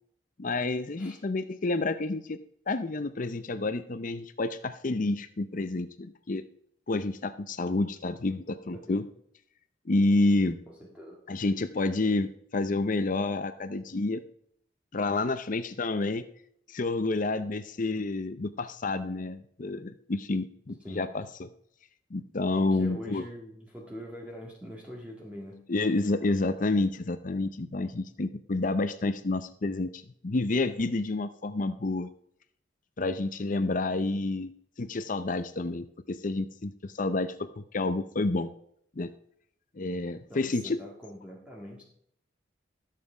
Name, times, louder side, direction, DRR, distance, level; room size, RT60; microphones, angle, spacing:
voice 1, 0.4-2.4 2.7-6.4 6.9-9.0 9.9-10.6 11.3-14.2 14.9-16.3 16.7-21.5 22.1-23.2 25.7-32.1 33.0-34.5 34.8-38.5 39.0-39.1 39.8-40.8, left 2 dB, 45° left, 11 dB, 0.6 m, -29 dB
voice 2, 10.7-11.2 20.8-21.1 22.6-25.6 40.3-41.8, equal, 5° right, -3 dB, 1.9 m, -43 dB
13.5 x 7.6 x 5.0 m, 0.69 s
head